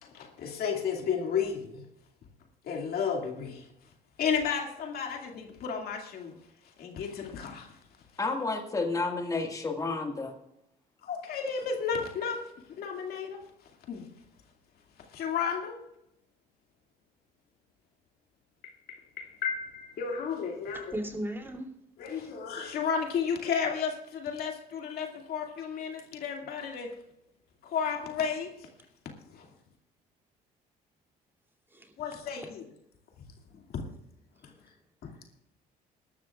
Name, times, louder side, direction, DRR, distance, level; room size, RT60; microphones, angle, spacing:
voice 1, 0.0-1.8 2.6-3.7 4.2-6.3 6.8-7.8 11.0-12.5 12.8-13.5 13.9-14.1 15.1-15.8 18.6-20.9 22.0-27.0 27.6-28.7 29.3-29.5 32.0-32.6 33.5-33.8 35.0-35.1, left 6 dB, 65° left, 2.3 m, -33 dB
voice 2, 8.2-10.3, left 3 dB, 20° left, 1.9 m, -31 dB
voice 3, 20.7-21.7 22.1-22.3 31.7-31.9, right 1 dB, 15° right, 2.9 m, -37 dB
21.5 x 12.5 x 2.4 m
cardioid pair, 110°, 17 cm